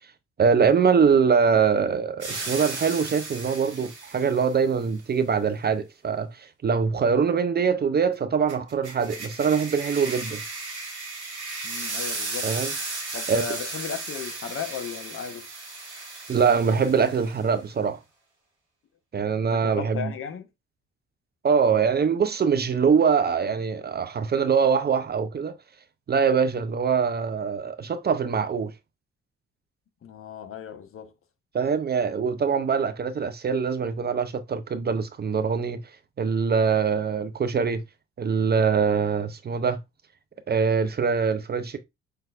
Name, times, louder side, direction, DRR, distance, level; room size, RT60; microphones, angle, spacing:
voice 1, 0.4-10.4 12.4-12.7 13.3-13.4 16.3-18.0 19.1-20.1 21.4-25.6 26.1-28.7 31.5-35.8 36.2-37.8 38.2-39.8 40.5-41.8, right 6 dB, 30° right, 0.6 m, -23 dB
sound 1, 2.2-4.5 8.5-17.4, right 3 dB, 90° right, 1.5 m, -35 dB
voice 2, 11.6-12.5 13.1-15.5 19.5-20.5 30.0-31.1, left 7 dB, 40° left, 0.8 m, -35 dB
5.7 x 3.2 x 2.4 m
figure-of-eight pair, 45°, 33 cm